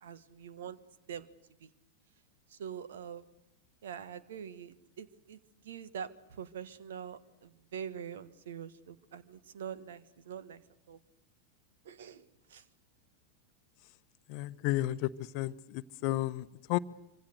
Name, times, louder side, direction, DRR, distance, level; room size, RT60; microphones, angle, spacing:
voice 1, 0.0-0.8 1.1-1.3 1.6-1.7 2.5-3.2 3.8-5.4 5.6-6.1 6.4-10.6 10.9-11.0 11.8-12.2 12.5-12.6, right 8 dB, 60° right, 14 dB, 1.6 m, -44 dB
voice 2, 14.3-16.8, left 16 dB, 45° left, 15 dB, 0.9 m, -33 dB
25.5 x 25.5 x 6.6 m, 0.88 s
figure-of-eight pair, 90°, 0 cm